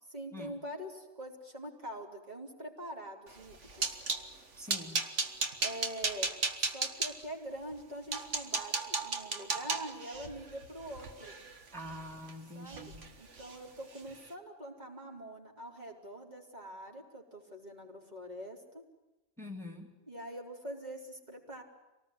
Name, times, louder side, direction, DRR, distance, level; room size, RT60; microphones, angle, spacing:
voice 1, 0.1-3.9 5.6-6.3 6.6-11.4 12.5-18.8 20.1-21.6, right 1 dB, 35° right, -1 dB, 4.4 m, -44 dB
sound 1, 3.4-4.3 4.7-7.1 7.7-7.8 8.1-12.3 12.7-13.1 13.3-13.6 14.0-14.1, right 4 dB, 85° right, 2.1 m, -35 dB
voice 2, 4.6-5.0 11.7-13.1 19.4-19.9, left 1 dB, ahead, 2 dB, 2.6 m, -45 dB
25.5 x 19.0 x 9.8 m, 1.0 s
omnidirectional pair, 1.2 m